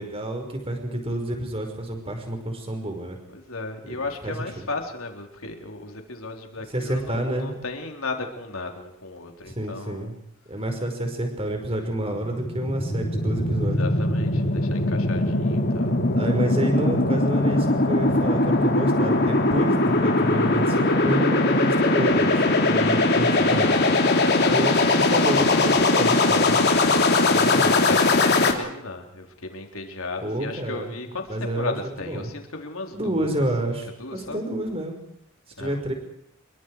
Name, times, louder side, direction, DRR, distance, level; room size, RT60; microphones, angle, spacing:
voice 1, 0.0-3.2 3.9-4.3 6.7-7.5 9.4-10.2 10.5-13.9 16.1-23.7 24.5-26.6 27.4-27.8 30.2-30.9 31.3-32.3 32.9-35.0 35.6-35.9, right 1 dB, 25° right, 4 dB, 5.1 m, -29 dB
voice 2, 3.3-10.1 13.8-15.9 23.3-23.9 24.2-25.5 27.3-33.5 34.0-34.4 35.6-35.8, left 3 dB, 70° left, 3 dB, 4.1 m, -35 dB
sound 1, 12.0-28.5, left 2 dB, 50° left, 3.4 m, -21 dB
28.0 x 23.5 x 4.9 m, 0.75 s
head